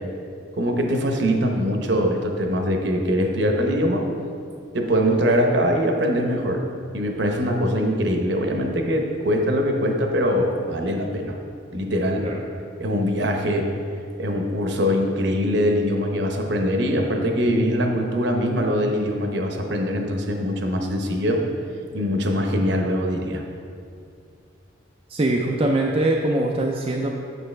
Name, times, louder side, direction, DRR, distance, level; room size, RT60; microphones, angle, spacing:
voice 1, 0.5-4.1 4.7-6.6 6.9-11.3 11.7-12.3 12.8-13.7 14.2-21.4 21.9-23.4, equal, 60° right, 2 dB, 0.8 m, -22 dB
voice 2, 25.1-27.1, right 2 dB, 30° right, 0 dB, 0.4 m, -22 dB
8.0 x 6.5 x 3.3 m, 2.4 s
head